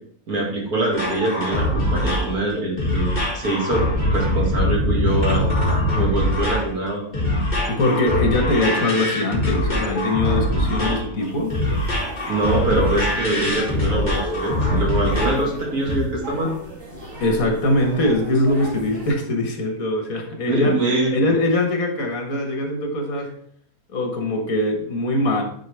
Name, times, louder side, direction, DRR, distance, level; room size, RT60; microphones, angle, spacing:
voice 1, 0.3-5.4 6.0-7.0 12.3-16.5 20.5-21.1, right 2 dB, 75° right, -2 dB, 2.6 m, -23 dB
sound 1, 0.9-15.5 15.9-16.0, left 1 dB, 30° left, 2.1 m, -23 dB
voice 2, 7.7-11.6 17.2-20.8 21.1-23.3 23.9-25.4, left 1 dB, 70° left, 3 dB, 1.6 m, -22 dB
sound 2, 11.2-19.1, right 1 dB, 50° right, 2.4 m, -38 dB
9.5 x 4.4 x 3.3 m, 0.63 s
omnidirectional pair, 1.6 m